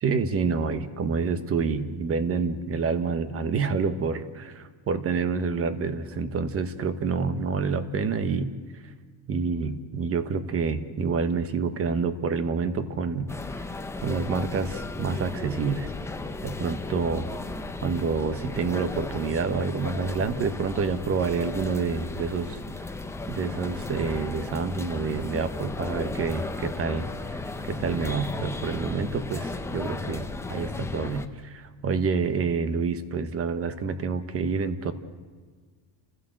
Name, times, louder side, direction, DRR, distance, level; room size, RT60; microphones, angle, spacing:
voice 1, 0.0-8.5 9.3-13.3 13.6-13.7 14.0-15.9 16.4-17.3 17.8-22.6 23.3-34.9, right 5 dB, 30° right, 12 dB, 1.1 m, -28 dB
sound 1, 13.3-31.3, left 3 dB, 5° left, 0.5 m, -35 dB
29.0 x 15.5 x 7.7 m, 1.5 s
cardioid pair, 165°, 49 cm